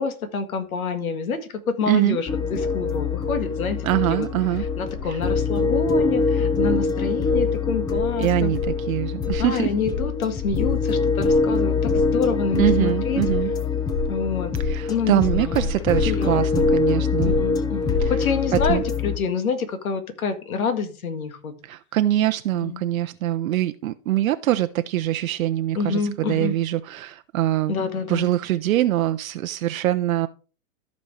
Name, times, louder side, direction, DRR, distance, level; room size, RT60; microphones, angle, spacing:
voice 1, 0.0-4.3 4.8-8.5 9.2-13.2 14.1-14.5 14.9-15.7 16.0-16.7 17.2-21.5 22.5-22.8 25.8-26.5 27.7-28.3, left 5 dB, 80° left, 1.8 m, -27 dB
voice 2, 1.9-2.2 3.8-4.6 8.2-9.7 12.6-13.5 14.6-17.3 18.0-18.1 18.7-18.8 21.6-27.8 28.1-30.3, right 13 dB, 75° right, 0.6 m, -23 dB
sound 1, 2.3-19.2, left 4 dB, 10° left, 0.5 m, -24 dB
14.0 x 5.3 x 3.3 m
hypercardioid pair, 125°, 42 cm